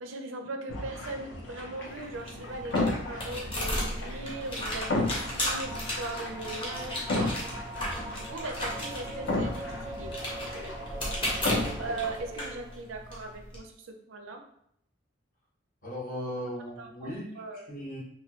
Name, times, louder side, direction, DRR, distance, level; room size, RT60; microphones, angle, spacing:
voice 1, 0.0-7.3 8.1-10.7 11.8-14.4 16.8-17.7, right 2 dB, 90° right, 4 dB, 0.5 m, -39 dB
sound 1, 0.7-12.2, left 2 dB, 70° left, 0.8 m, -35 dB
sound 2, 1.9-13.6, equal, 25° left, 0.9 m, -35 dB
sound 3, 4.9-13.0, right 2 dB, 10° right, 0.5 m, -43 dB
voice 2, 15.8-18.0, equal, 45° left, -5 dB, 1.1 m, -37 dB
3.1 x 2.2 x 3.0 m, 0.71 s
head